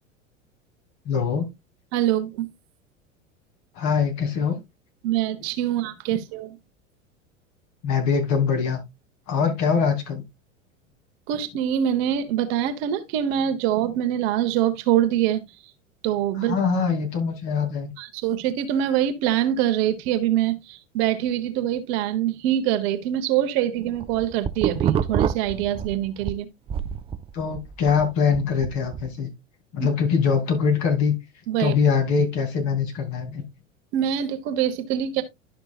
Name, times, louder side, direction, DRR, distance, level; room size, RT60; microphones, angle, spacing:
voice 1, 1.0-1.5 3.7-4.6 7.8-8.8 9.3-10.2 16.4-17.9 27.3-29.3 29.7-31.1 31.6-33.4, left 6 dB, 45° left, 2.9 m, -23 dB
voice 2, 1.9-2.5 5.0-6.6 11.3-15.4 16.0-16.6 18.0-26.5 29.8-29.9 31.5-31.7 33.9-35.2, right 11 dB, 50° right, 1.2 m, -24 dB
sound 1, 23.8-26.4 26.7-29.1, right 8 dB, 15° right, 0.4 m, -27 dB
11.5 x 5.9 x 2.4 m
figure-of-eight pair, 80°, 39 cm